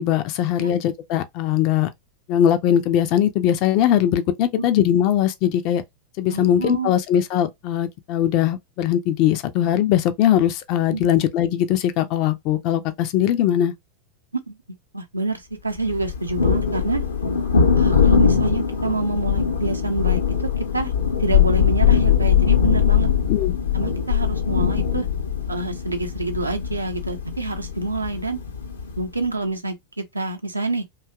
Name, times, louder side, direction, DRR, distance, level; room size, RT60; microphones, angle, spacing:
voice 1, 0.0-1.9 2.3-5.8 6.2-13.7 23.3-23.5, left 11 dB, 40° left, 0.4 m, -20 dB
voice 2, 6.3-7.0 10.9-11.1 14.5-14.6 14.9-17.0 17.8-20.9 21.2-23.1 23.7-25.1 25.5-28.4 29.0-30.8, right 2 dB, 80° right, 0.6 m, -27 dB
Thunder, 15.9-29.1, left 7 dB, 70° left, 0.7 m, -21 dB
2.7 x 2.3 x 2.3 m
figure-of-eight pair, 90°, 0 cm